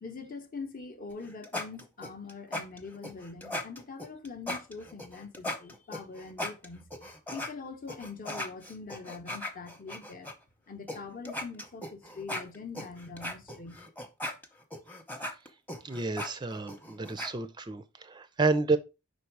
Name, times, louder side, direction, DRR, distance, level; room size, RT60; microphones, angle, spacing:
voice 1, 0.0-6.8 7.3-10.3 10.7-13.8, left 4 dB, 40° left, 0.8 m, -43 dB
sound 1, 1.1-7.5 7.9-10.3 10.9-11.0 11.2-17.3, left 1 dB, 10° left, 0.8 m, -38 dB
voice 2, 15.8-18.8, right 3 dB, 20° right, 0.4 m, -30 dB
5.2 x 4.1 x 4.6 m
head